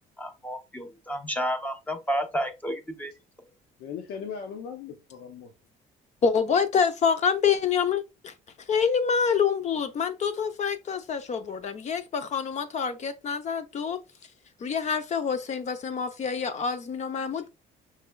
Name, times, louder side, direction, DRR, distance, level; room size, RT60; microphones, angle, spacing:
voice 1, 0.2-3.1, equal, 10° left, 0.8 m, -31 dB
voice 2, 3.8-5.5, left 6 dB, 85° left, 0.7 m, -38 dB
voice 3, 6.2-8.3 8.7-14.0 14.6-17.5, left 6 dB, 45° left, 0.7 m, -26 dB
5.6 x 3.3 x 2.3 m
cardioid pair, 110°, 17 cm